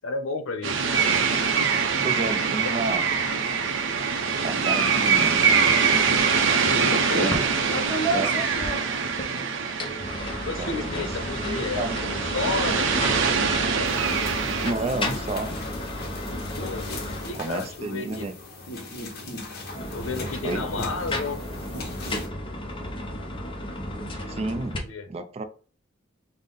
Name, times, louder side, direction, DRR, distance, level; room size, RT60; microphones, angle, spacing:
voice 1, 0.0-0.8 6.6-7.4 10.4-13.9 16.5-18.3 19.9-21.4 24.8-25.1, left 3 dB, 90° left, 8 dB, 0.6 m, -32 dB
sound 1, 0.6-14.7, right 5 dB, 70° right, 0.6 m, -24 dB
voice 2, 2.0-3.1 4.4-5.5 7.1-7.4 8.1-8.4 8.9-9.1 9.3-9.5 10.6-11.1 11.4-12.0 14.6-15.6 17.3-18.3 20.4-20.7 24.3-24.8 25.1-25.4, right 3 dB, 30° right, 10 dB, 0.3 m, -31 dB
sound 2, 7.3-7.5 7.7-9.3 9.7-17.7 19.5-24.8, left 1 dB, 25° left, 0.7 m, -33 dB
sound 3, 13.9-22.3, left 2 dB, 50° left, 1.0 m, -39 dB
5.4 x 2.0 x 3.8 m, 0.40 s
head